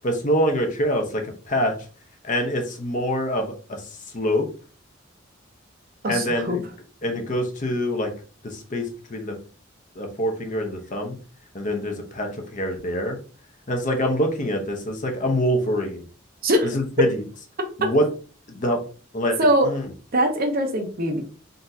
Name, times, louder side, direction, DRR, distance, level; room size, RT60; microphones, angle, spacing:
voice 1, 0.0-1.7 2.2-4.5 6.1-6.6 7.0-8.1 8.4-9.3 10.0-11.1 11.5-13.2 13.7-16.0 16.7-17.2 17.8-18.1 18.5-18.8 19.1-19.4 19.6-19.9, equal, 40° left, 3 dB, 0.8 m, -25 dB
voice 2, 6.0-6.6 16.4-16.7 19.4-19.7 20.1-21.3, right 1 dB, 45° right, 4 dB, 0.8 m, -21 dB
3.9 x 3.5 x 2.7 m, 0.39 s
head